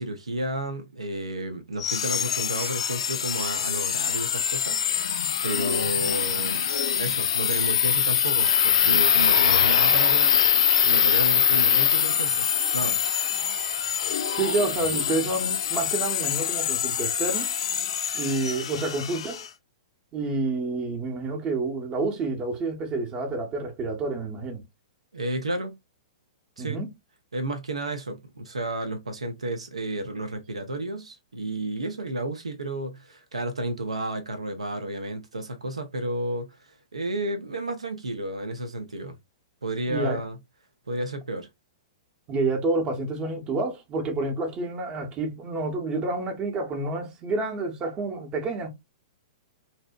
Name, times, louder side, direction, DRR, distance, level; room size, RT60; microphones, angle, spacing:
voice 1, 0.0-6.7 7.0-12.5 12.7-13.0 25.1-25.8 26.6-26.8 27.3-39.2 39.6-40.4 40.9-41.5, right 1 dB, 80° right, 0.5 m, -32 dB
sound 1, 1.8-19.5, left 8 dB, 60° left, 0.3 m, -24 dB
voice 2, 14.3-17.5 18.1-19.5 20.1-24.6 26.6-26.9 39.9-40.2 42.3-48.7, right 3 dB, 25° right, 0.7 m, -29 dB
2.7 x 2.0 x 2.2 m
figure-of-eight pair, 110°, 3 cm